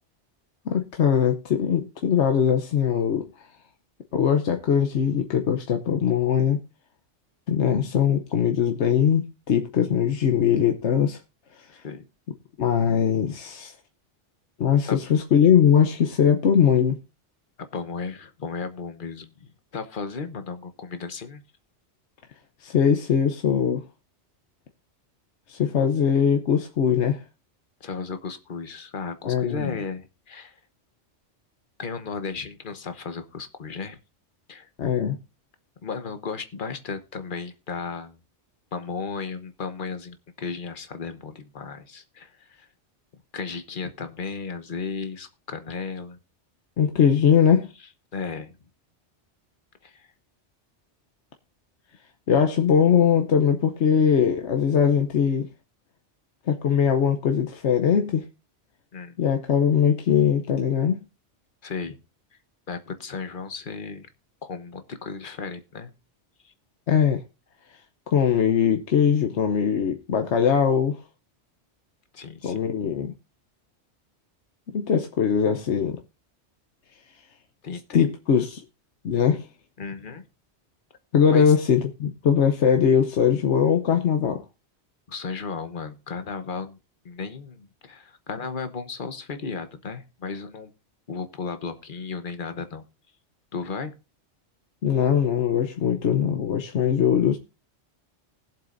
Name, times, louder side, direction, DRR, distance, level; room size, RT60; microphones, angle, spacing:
voice 1, 0.7-3.3 4.1-6.6 7.5-11.2 12.6-13.7 14.6-17.0 22.6-23.8 25.5-27.2 29.2-29.8 34.8-35.2 46.8-47.7 52.3-55.5 56.5-58.3 59.2-61.0 66.9-67.2 68.1-71.0 72.4-73.1 74.7-76.0 77.9-78.6 79.0-79.5 81.1-84.4 94.8-97.4, left 8 dB, 75° left, 1.1 m, -21 dB
voice 2, 11.7-12.0 14.9-15.0 17.7-21.4 27.8-30.6 31.8-34.0 34.5-34.7 35.8-38.2 38.7-42.7 43.3-46.2 48.1-48.6 49.8-50.1 58.9-59.2 61.6-62.0 62.7-64.1 64.4-65.9 66.4-66.5 72.1-72.6 77.6-78.1 79.8-80.3 81.3-81.5 85.1-86.8 87.0-90.7 91.1-92.8 93.5-93.9, left 5 dB, 45° left, 1.1 m, -34 dB
20.0 x 7.4 x 2.5 m
omnidirectional pair, 1.2 m